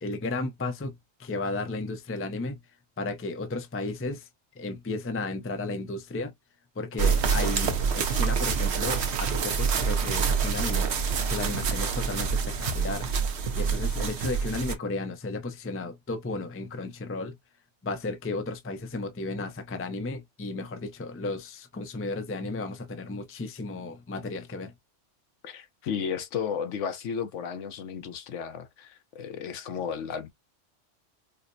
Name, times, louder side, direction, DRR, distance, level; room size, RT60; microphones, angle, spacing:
voice 1, 0.0-2.6 3.0-4.3 4.6-6.3 6.8-10.9 11.3-13.1 13.5-17.4 17.8-24.7, left 2 dB, 20° left, 0.4 m, -34 dB
sound 1, 7.0-14.7, right 6 dB, 65° right, 1.0 m, -26 dB
voice 2, 25.4-30.3, left 7 dB, 80° left, 1.0 m, -33 dB
4.9 x 2.1 x 2.5 m
omnidirectional pair, 1.2 m